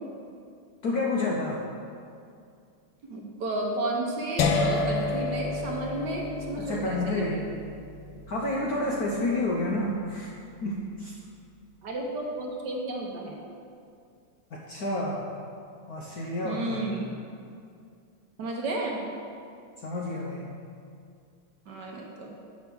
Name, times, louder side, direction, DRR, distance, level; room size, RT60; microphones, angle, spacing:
voice 1, 0.8-1.6 6.6-7.4 8.3-10.3 10.6-11.1 14.5-15.3 15.9-16.9 19.8-20.5, left 2 dB, 65° left, -3 dB, 0.9 m, -29 dB
voice 2, 3.1-7.4 11.8-13.4 16.4-17.1 18.4-19.0 21.7-22.3, right 2 dB, 60° right, -1 dB, 1.3 m, -32 dB
sound 1, 4.4-10.3, left 3 dB, 85° left, 1.6 m, -31 dB
6.0 x 5.7 x 6.9 m, 2.4 s
omnidirectional pair, 2.4 m